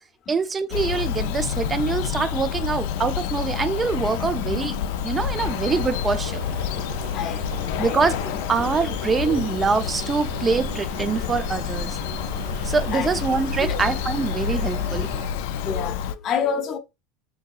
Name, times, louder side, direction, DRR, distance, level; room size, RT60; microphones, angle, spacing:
voice 1, 0.3-4.8 5.0-6.4 7.8-8.2 8.5-12.0 12.6-15.2, right 5 dB, 20° right, 0.4 m, -24 dB
Bird vocalization bird call bird song, 0.7-16.1, left 8 dB, 70° left, 0.3 m, -28 dB
sound 1, 5.4-15.3, right 2 dB, 80° right, 1.0 m, -37 dB
voice 2, 7.1-8.0 9.3-9.4 12.9-13.1 13.6-13.8 15.6-16.8, left 7 dB, 40° left, 0.7 m, -28 dB
3.7 x 2.7 x 2.3 m
supercardioid pair, 145°, 0 cm